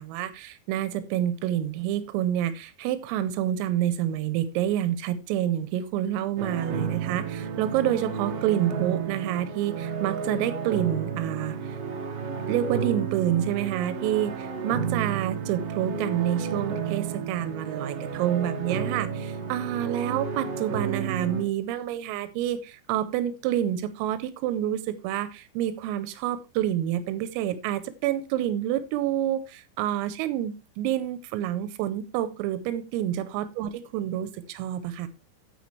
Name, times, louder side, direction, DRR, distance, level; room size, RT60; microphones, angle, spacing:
voice 1, 0.0-11.8 12.5-35.1, right 11 dB, 90° right, 12 dB, 3.4 m, -28 dB
sound 1, 6.4-21.4, right 6 dB, 70° right, 2.1 m, -32 dB
9.3 x 8.7 x 3.2 m, 0.28 s
omnidirectional pair, 5.9 m